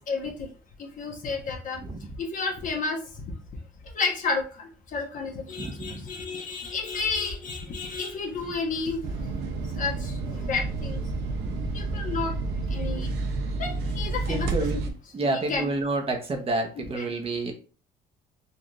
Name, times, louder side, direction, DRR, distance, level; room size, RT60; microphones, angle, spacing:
voice 1, 0.8-1.8 2.2-3.0 3.9-9.0 9.8-11.0 11.7-12.3 12.7-13.1 13.6-14.8 15.2-15.7 16.8-17.0, left 4 dB, 50° left, 1 dB, 1.1 m, -31 dB
voice 2, 5.6-6.0 11.3-11.7 14.3-14.8 15.1-17.5, right 2 dB, 35° right, 3 dB, 0.9 m, -29 dB
sound 1, 9.0-14.9, right 3 dB, 80° right, 0.7 m, -30 dB
4.1 x 2.5 x 3.0 m, 0.37 s
cardioid pair, 110°, 17 cm